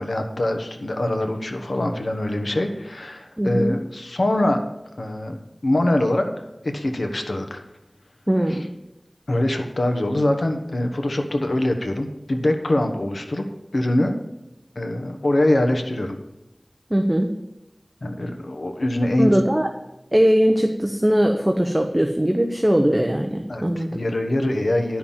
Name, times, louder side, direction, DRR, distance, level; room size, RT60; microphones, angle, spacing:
voice 1, 0.0-4.6 5.0-5.4 5.6-6.3 6.6-7.6 8.5-8.6 9.3-13.4 13.7-14.2 14.7-16.2 18.0-19.3 23.5-25.0, left 1 dB, 85° left, 5 dB, 1.1 m, -23 dB
voice 2, 3.4-3.8 8.3-8.7 16.9-17.3 19.2-19.7 20.1-24.0, equal, 20° right, 4 dB, 1.0 m, -20 dB
10.5 x 5.9 x 7.3 m, 0.94 s
wide cardioid pair, 40°, 0 cm